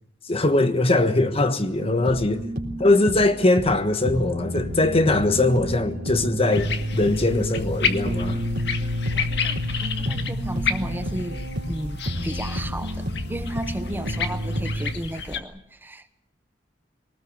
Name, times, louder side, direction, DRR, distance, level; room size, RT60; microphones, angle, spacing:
voice 1, 0.3-2.4 2.8-8.4, left 2 dB, 35° left, 1.4 m, -21 dB
sound 1, 1.8-14.9, equal, 60° right, 3.9 m, -30 dB
sound 2, 6.5-15.4, left 5 dB, 70° left, 1.8 m, -31 dB
voice 2, 9.1-11.4 11.7-16.2, right 1 dB, 10° right, 0.9 m, -35 dB
23.0 x 19.0 x 8.4 m
head